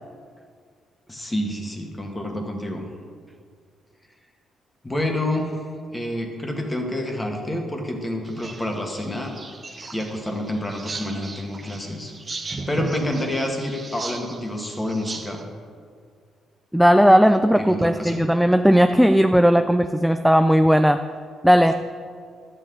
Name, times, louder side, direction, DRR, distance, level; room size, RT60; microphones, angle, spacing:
voice 1, 1.1-2.8 4.8-5.6 5.9-9.4 9.9-12.1 12.7-15.4 17.6-18.3, left 1 dB, 15° left, 2 dB, 1.6 m, -28 dB
sound 1, 8.2-15.4, right 3 dB, 30° right, 1.1 m, -37 dB
voice 2, 16.7-21.0 21.4-21.7, equal, ahead, 8 dB, 0.3 m, -16 dB
12.0 x 8.1 x 3.8 m, 2.1 s
cardioid pair, 90°, 0 cm